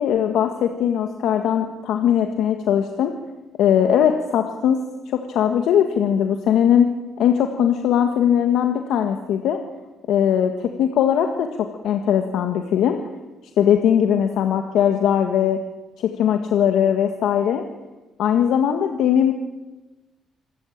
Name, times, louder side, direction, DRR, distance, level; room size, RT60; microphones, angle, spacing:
voice 1, 0.0-3.1 3.6-4.8 5.1-6.9 7.2-9.6 10.1-13.0 13.6-15.6 16.0-17.6 18.2-19.3, left 9 dB, 80° left, 5 dB, 1.8 m, -20 dB
26.5 x 14.0 x 8.9 m, 1.1 s
cardioid pair, 110°, 0 cm